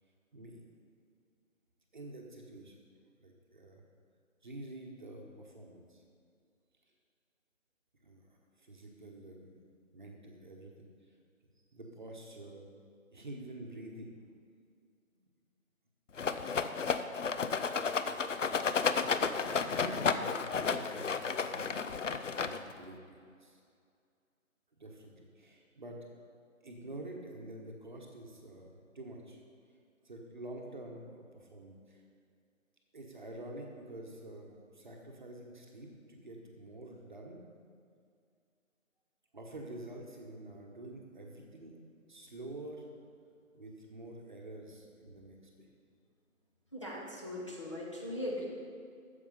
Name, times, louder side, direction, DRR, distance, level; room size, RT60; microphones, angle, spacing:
voice 1, 0.3-0.7 1.9-2.8 3.2-3.8 4.4-6.0 8.0-9.6 9.9-10.7 11.7-12.7 13.1-14.1 15.1-15.2 19.3-21.7 22.4-23.6 24.8-26.0 26.6-29.4 30.0-32.0 32.9-37.4 39.3-41.8 42.1-42.9 43.5-45.7, right 1 dB, 35° right, 0 dB, 1.1 m, -48 dB
Rattle, 16.2-22.8, left 5 dB, 65° left, 0.6 m, -32 dB
voice 2, 46.7-48.5, left 1 dB, 25° left, -5 dB, 0.8 m, -39 dB
9.1 x 7.0 x 5.5 m, 2.3 s
figure-of-eight pair, 160°, 40 cm